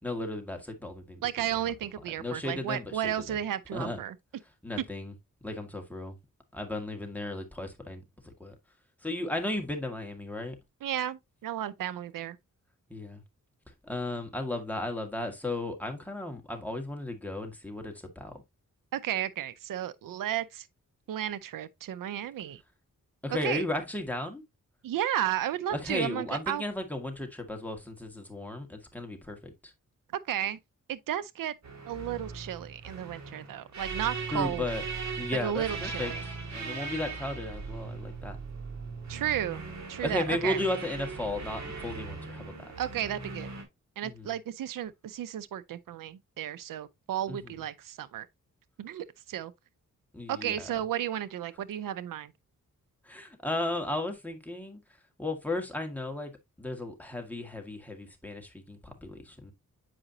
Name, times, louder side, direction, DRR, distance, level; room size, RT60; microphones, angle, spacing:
voice 1, 0.0-1.7 2.2-3.4 3.7-4.0 4.6-5.1 5.4-6.2 6.5-8.6 9.0-10.6 12.9-13.2 13.8-18.4 23.2-24.4 25.7-29.7 34.3-34.8 35.2-38.4 40.0-42.7 44.0-44.3 47.3-47.5 50.1-50.7 53.0-54.8 55.2-56.3 56.6-59.5, left 2 dB, 5° left, 1.9 m, -35 dB
voice 2, 1.2-4.1 10.8-12.4 18.9-20.7 21.1-22.6 23.4-23.6 24.8-26.6 30.3-30.6 30.9-31.5 31.9-34.6 35.4-36.2 39.1-39.6 39.9-40.6 42.8-43.5 44.0-48.3 48.8-49.5 50.3-52.3, right 11 dB, 85° right, 0.6 m, -33 dB
sound 1, 31.6-43.6, right 4 dB, 55° right, 2.4 m, -39 dB
7.8 x 4.9 x 2.8 m
cardioid pair, 70°, 32 cm